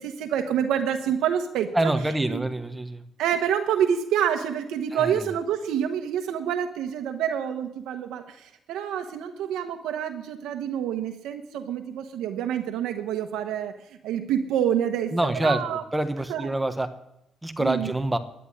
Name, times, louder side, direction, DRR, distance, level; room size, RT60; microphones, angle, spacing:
voice 1, 0.0-1.9 2.3-2.4 3.2-15.8 16.3-16.5 17.6-17.9, right 9 dB, 90° right, 6 dB, 1.1 m, -27 dB
voice 2, 1.7-3.0 4.9-5.1 15.1-15.6 15.9-16.9 17.4-18.2, right 1 dB, 10° right, 9 dB, 1.2 m, -25 dB
11.0 x 9.9 x 9.8 m, 0.82 s
cardioid pair, 90°, 0 cm